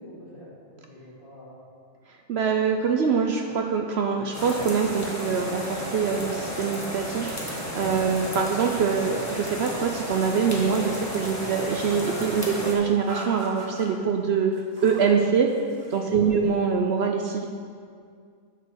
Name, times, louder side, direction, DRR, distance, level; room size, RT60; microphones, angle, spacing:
voice 1, 0.0-1.6 16.1-16.4, equal, 45° left, -6 dB, 2.3 m, -44 dB
voice 2, 2.3-14.5 14.8-15.5 15.9-17.5, right 6 dB, 60° right, 3 dB, 0.8 m, -24 dB
sound 1, 4.3-12.7, equal, 15° left, 1.3 m, -33 dB
sound 2, 11.6-12.4 13.0-13.9 14.5-15.2 15.5-16.1, right 2 dB, 80° right, 1.6 m, -40 dB
9.7 x 5.2 x 6.4 m, 2.2 s
omnidirectional pair, 1.3 m